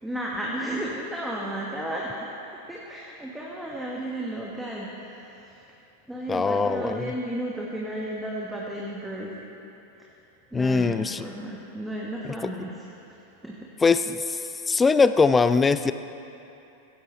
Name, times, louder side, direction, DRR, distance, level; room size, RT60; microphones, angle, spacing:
voice 1, 0.0-2.3 2.7-5.6 6.1-9.4 9.9-10.0 10.5-13.7, right 1 dB, 5° right, -4 dB, 1.5 m, -34 dB
voice 2, 6.3-7.1 10.5-11.2 13.8-14.4 14.7-15.9, left 4 dB, 15° left, 12 dB, 0.4 m, -21 dB
16.5 x 15.5 x 3.1 m, 2.9 s
figure-of-eight pair, 90°, 0 cm